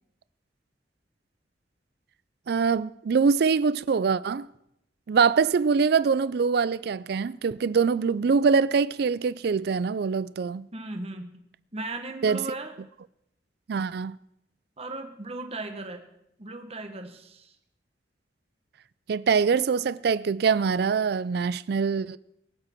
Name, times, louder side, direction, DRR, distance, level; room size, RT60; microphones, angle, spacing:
voice 1, 2.5-4.5 5.1-10.7 12.2-12.4 13.7-14.2 19.1-22.2, right 5 dB, 65° right, 0.4 m, -24 dB
voice 2, 10.7-11.4 11.7-12.7 14.8-16.1 16.4-17.5, right 2 dB, 35° right, 1.4 m, -37 dB
22.5 x 7.7 x 4.5 m
head